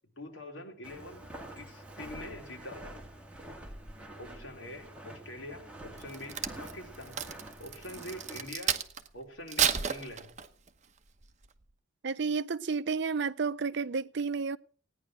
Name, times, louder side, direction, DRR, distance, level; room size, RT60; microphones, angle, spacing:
voice 1, 0.2-1.2 1.5-3.0 4.2-7.3 7.6-8.8 9.1-10.3, left 1 dB, 70° left, 3.7 m, -45 dB
Walk footsteps, 0.8-8.5, right 1 dB, 5° right, 2.2 m, -47 dB
Crack, 6.0-9.1 9.5-10.7 11.2-11.5, right 8 dB, 35° right, 1.0 m, -32 dB
voice 2, 12.0-14.6, right 5 dB, 60° right, 0.6 m, -31 dB
17.0 x 9.9 x 6.2 m
head